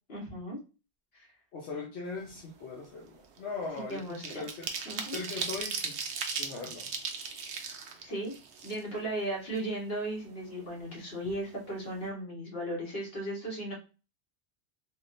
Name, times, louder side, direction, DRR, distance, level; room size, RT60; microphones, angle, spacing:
voice 1, 0.1-0.6 1.1-1.3 3.8-4.4 4.8-5.2 8.0-8.4 8.6-13.7, right 1 dB, 65° left, -3 dB, 1.4 m, -36 dB
voice 2, 1.5-4.7 5.1-6.0 6.3-6.9, left 4 dB, 85° left, -2 dB, 1.0 m, -40 dB
sound 1, 2.2-2.4 2.8-9.2 9.6-9.7 10.0-10.9 11.2-11.4 11.7-12.0, right 5 dB, 85° right, 0.9 m, -38 dB
3.5 x 2.2 x 2.5 m, 0.33 s
omnidirectional pair, 1.1 m